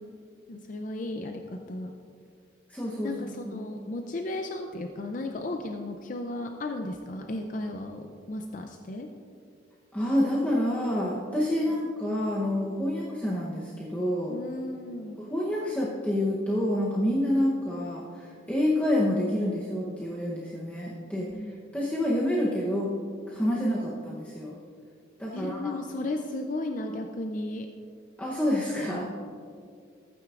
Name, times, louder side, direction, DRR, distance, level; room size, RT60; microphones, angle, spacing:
voice 1, 0.5-1.9 3.0-9.1 11.7-11.8 14.3-15.2 21.2-21.5 25.3-27.7, left 2 dB, 45° left, 4 dB, 0.5 m, -35 dB
voice 2, 2.7-3.6 9.9-14.4 15.3-21.3 21.7-22.9 23.3-24.6 25.2-25.8 28.2-29.1, left 1 dB, 10° left, -6 dB, 0.8 m, -28 dB
15.0 x 8.9 x 2.5 m, 2.3 s
head